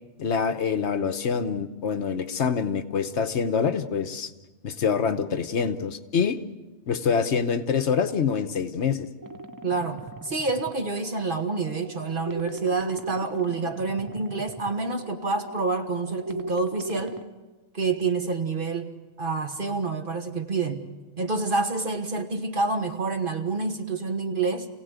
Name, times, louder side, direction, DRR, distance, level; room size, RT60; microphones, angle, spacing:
voice 1, 0.2-4.3 4.6-6.4 6.9-9.1, left 6 dB, 65° left, 10 dB, 1.2 m, -25 dB
sound 1, 9.2-17.2, right 2 dB, 20° right, 0.7 m, -39 dB
voice 2, 9.6-17.2 17.7-18.9 19.2-20.9 21.2-24.7, right 3 dB, 45° right, 5 dB, 1.6 m, -28 dB
27.0 x 17.0 x 8.1 m, 1.2 s
omnidirectional pair, 1.3 m